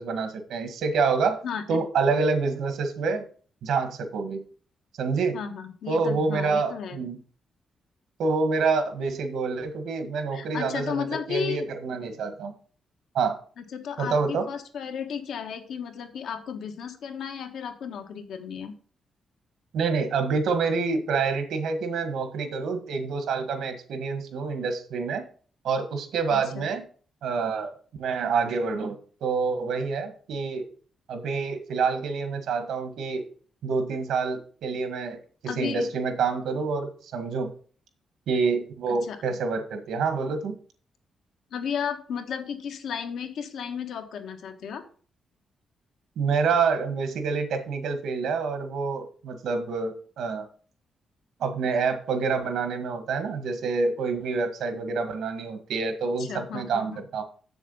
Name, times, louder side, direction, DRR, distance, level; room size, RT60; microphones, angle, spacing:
voice 1, 0.0-1.4 1.7-3.3 3.6-4.4 5.0-5.4 5.9-7.2 8.2-12.5 13.1-13.4 14.0-14.4 19.7-25.2 25.6-26.8 27.2-27.7 28.0-30.6 31.1-33.2 33.6-35.2 35.6-37.5 38.3-40.6 46.2-50.5 51.4-57.2, right 4 dB, 90° right, 8 dB, 1.7 m, -27 dB
voice 2, 1.4-1.8 5.3-7.0 10.3-11.7 13.6-18.7 26.3-26.6 35.5-35.9 39.0-39.2 41.5-44.8 56.2-57.0, left 7 dB, 80° left, 6 dB, 1.4 m, -34 dB
7.6 x 7.1 x 5.6 m, 0.43 s
wide cardioid pair, 160°, 0 cm